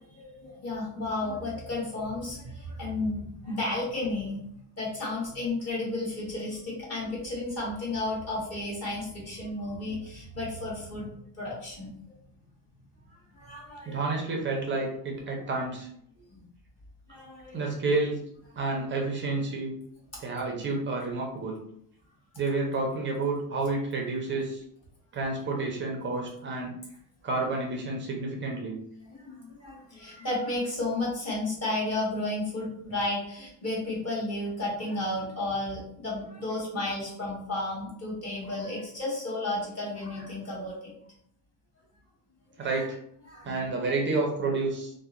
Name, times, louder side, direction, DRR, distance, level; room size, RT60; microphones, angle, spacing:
voice 1, 0.1-4.4 4.8-11.1 11.4-12.0 13.1-14.0 16.3-16.4 17.1-17.7 29.1-41.1 42.6-42.8 43.3-43.7, left 2 dB, 35° left, -5 dB, 1.1 m, -33 dB
voice 2, 13.9-15.9 17.5-18.2 18.6-19.7 20.2-21.6 22.4-24.6 25.1-26.7 27.2-28.8 42.6-43.0 43.4-44.9, right 3 dB, 30° right, 0 dB, 0.4 m, -30 dB
2.7 x 2.0 x 2.4 m, 0.70 s
cardioid pair, 135°, 45 cm